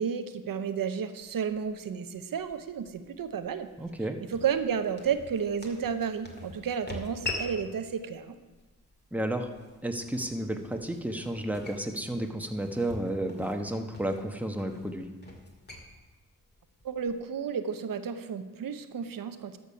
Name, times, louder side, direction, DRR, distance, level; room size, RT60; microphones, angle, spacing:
voice 1, 0.0-3.7 4.3-8.4 16.8-19.6, right 7 dB, 85° right, 10 dB, 0.8 m, -32 dB
sound 1, 1.2-17.3, left 2 dB, 30° left, 2.2 m, -45 dB
voice 2, 3.8-4.2 9.1-9.5 9.8-15.1, right 1 dB, 5° right, 4 dB, 1.1 m, -32 dB
12.5 x 6.8 x 5.6 m, 1.2 s
cardioid pair, 65°, 33 cm